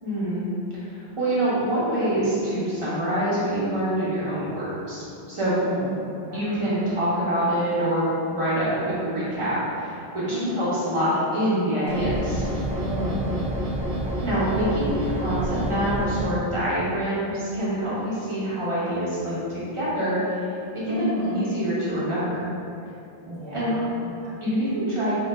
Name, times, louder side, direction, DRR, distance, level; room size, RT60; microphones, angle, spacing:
voice 1, 0.0-0.5 0.8-5.5 6.3-12.4 14.2-20.4 20.8-22.4 23.5-23.7 24.4-25.1, equal, 30° right, -10 dB, 0.9 m, -26 dB
voice 2, 5.5-6.4 10.3-10.6 12.8-13.4 20.9-21.4 23.3-23.9 24.2-24.4, equal, 50° right, -8 dB, 0.3 m, -31 dB
sound 1, 11.9-16.2, right 1 dB, 65° right, 0.8 m, -28 dB
2.6 x 2.2 x 3.2 m, 2.6 s
omnidirectional pair, 1.0 m